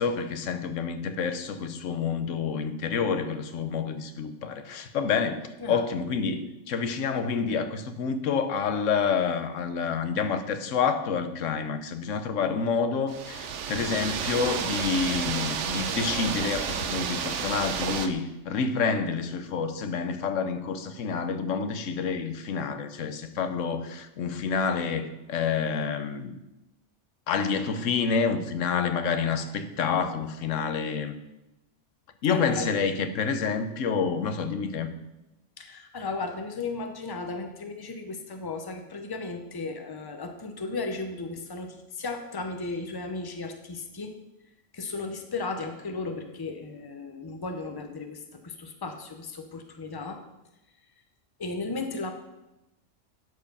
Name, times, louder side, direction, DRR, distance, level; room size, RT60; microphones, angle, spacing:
voice 1, 0.0-26.4 27.3-31.2 32.2-34.9, left 5 dB, 90° left, 9 dB, 1.1 m, -28 dB
sound 1, 13.1-18.1, right 7 dB, 75° right, 1.0 m, -31 dB
voice 2, 32.3-32.8 35.6-44.1 44.7-50.2 51.4-52.1, left 3 dB, 20° left, 5 dB, 0.7 m, -35 dB
12.0 x 4.7 x 5.4 m, 0.95 s
omnidirectional pair, 1.3 m